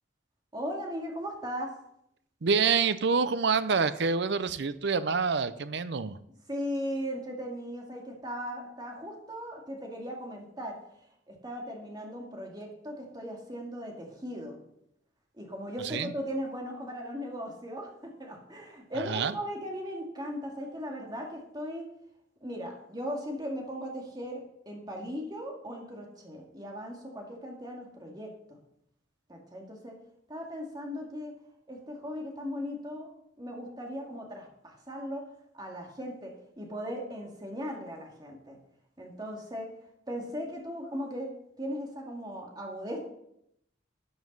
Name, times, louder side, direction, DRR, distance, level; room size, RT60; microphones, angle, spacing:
voice 1, 0.5-1.7 6.5-10.8 11.3-14.6 15.3-21.9 22.4-28.6 29.3-30.0 30.3-31.3 31.7-33.1 33.4-35.3 35.5-38.6 39.0-39.7 40.1-41.3 41.6-43.0, equal, 20° right, 0 dB, 2.1 m, -38 dB
voice 2, 2.4-6.2 15.8-16.1 19.1-19.3, right 5 dB, 60° right, 13 dB, 0.6 m, -27 dB
12.5 x 7.1 x 5.4 m, 0.76 s
head